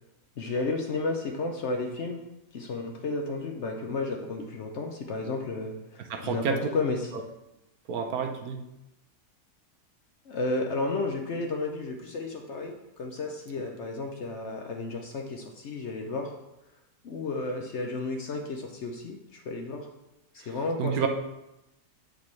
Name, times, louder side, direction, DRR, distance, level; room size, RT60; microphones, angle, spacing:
voice 1, 0.4-2.2 2.5-7.1 10.2-16.3 17.0-19.9 20.3-21.1, left 3 dB, 55° left, 3 dB, 0.8 m, -32 dB
voice 2, 6.1-6.6 7.9-8.6 20.8-21.1, right 7 dB, 70° right, 3 dB, 1.2 m, -29 dB
8.5 x 5.1 x 3.1 m, 0.91 s
omnidirectional pair, 1.7 m